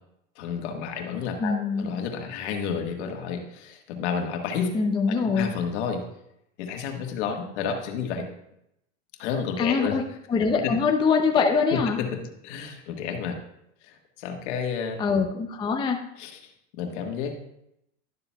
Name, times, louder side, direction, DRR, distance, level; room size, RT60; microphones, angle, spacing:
voice 1, 0.3-6.0 6.6-8.3 9.2-10.0 11.7-13.4 13.8-15.0 16.2-16.5 16.8-17.4, left 6 dB, 65° left, 4 dB, 1.5 m, -31 dB
voice 2, 1.4-1.9 4.7-5.5 9.6-10.0 10.3-12.0 15.0-16.0, left 5 dB, 15° left, 3 dB, 0.5 m, -23 dB
12.0 x 6.9 x 2.3 m, 0.81 s
supercardioid pair, 120°, 37 cm